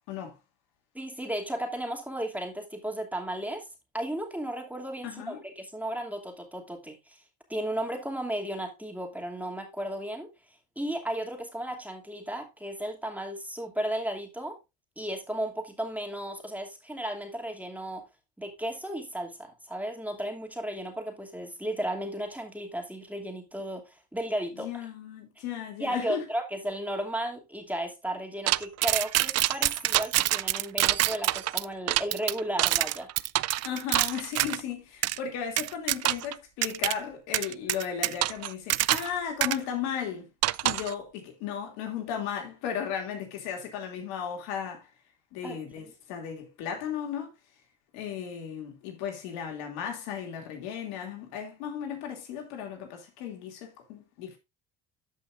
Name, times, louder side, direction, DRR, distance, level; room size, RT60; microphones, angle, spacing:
voice 1, 0.9-3.7 3.9-7.2 7.5-10.3 10.8-14.6 15.0-18.0 18.4-24.7 25.8-33.1 45.4-45.6, right 1 dB, 5° right, 2.6 m, -34 dB
voice 2, 5.0-5.4 24.5-26.3 33.6-40.3 40.6-44.9 45.3-47.3 47.9-54.4, left 8 dB, 85° left, 2.7 m, -35 dB
sound 1, 28.5-34.6 35.0-35.2 35.6-36.3 36.6-36.9 37.3-39.1 39.4-39.6 40.4-40.9, right 15 dB, 45° right, 0.4 m, -26 dB
13.5 x 5.6 x 2.6 m
supercardioid pair, 90°, 37 cm